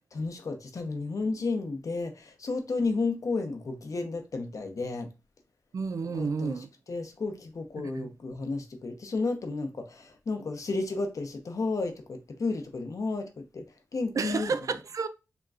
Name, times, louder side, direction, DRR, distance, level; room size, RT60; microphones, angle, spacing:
voice 1, 0.1-5.1 6.0-6.6 6.9-13.6 13.9-14.5, left 3 dB, 65° left, 0.8 m, -32 dB
voice 2, 5.7-6.7 7.9-8.1 14.1-15.1, right 5 dB, 65° right, 0.4 m, -31 dB
5.1 x 2.9 x 2.4 m
cardioid pair, 65°, 6 cm